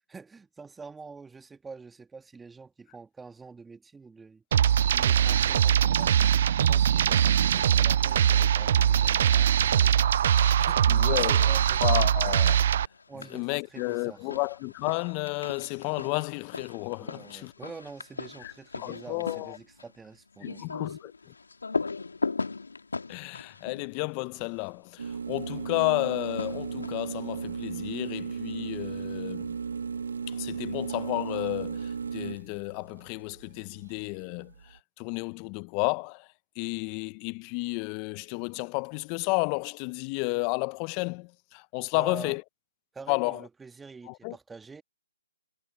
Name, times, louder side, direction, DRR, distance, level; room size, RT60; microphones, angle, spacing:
voice 1, 0.1-4.4 4.9-6.3 6.6-10.2 10.6-11.8 13.1-14.3 17.0-21.0 41.9-42.4 42.9-44.8, right 4 dB, 5° right, 1.8 m, -46 dB
sound 1, 4.5-12.9, right 9 dB, 50° right, 0.4 m, -22 dB
voice 2, 10.9-11.5 11.8-12.6 13.3-17.5 18.4-18.5 18.8-19.6 20.4-21.3 23.1-29.6 30.3-36.3 36.6-42.4 43.1-43.4 44.1-44.4, left 32 dB, 30° left, 0.7 m, -32 dB
sound 2, 12.9-13.5 13.7-24.8 26.0-27.2, left 4 dB, 80° left, 2.1 m, -38 dB
sound 3, 25.0-34.8, right 5 dB, 70° right, 1.4 m, -36 dB
figure-of-eight pair, 140°, 0 cm